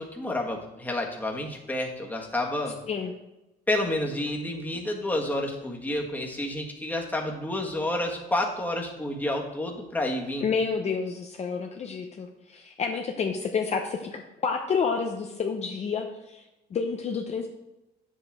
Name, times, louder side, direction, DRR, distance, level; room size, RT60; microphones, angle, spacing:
voice 1, 0.0-2.8 3.7-10.5, left 1 dB, 10° left, 0 dB, 1.6 m, -29 dB
voice 2, 10.4-16.4 16.7-17.5, left 5 dB, 40° left, 3 dB, 0.8 m, -29 dB
8.7 x 7.5 x 3.5 m, 0.96 s
cardioid pair, 110°, 17 cm